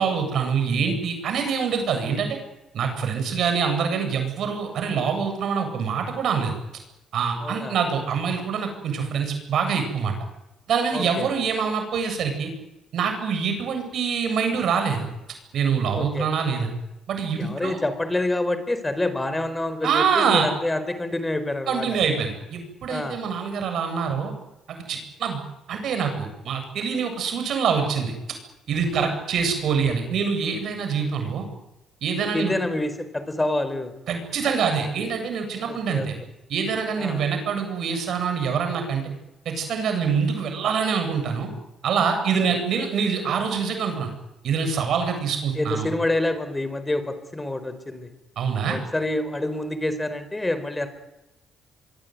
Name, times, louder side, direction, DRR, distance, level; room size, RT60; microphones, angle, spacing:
voice 1, 0.0-2.4 2.7-6.6 7.1-10.1 10.7-12.5 12.9-15.1 15.5-16.7 17.1-17.8 19.8-20.5 21.7-24.3 24.7-25.4 25.7-28.1 28.7-31.4 32.0-32.5 34.1-36.1 36.5-39.0 39.4-41.5 41.8-44.1 44.4-45.9 48.4-48.8, right 6 dB, 70° right, 6 dB, 7.9 m, -25 dB
voice 2, 7.4-7.7 10.9-11.3 15.9-16.3 17.4-21.9 22.9-23.2 29.0-29.1 32.3-33.9 35.7-36.1 37.0-37.2 45.5-48.1 48.6-50.9, left 2 dB, 15° left, 11 dB, 4.4 m, -27 dB
24.5 x 23.5 x 9.5 m, 0.95 s
supercardioid pair, 70°, 0 cm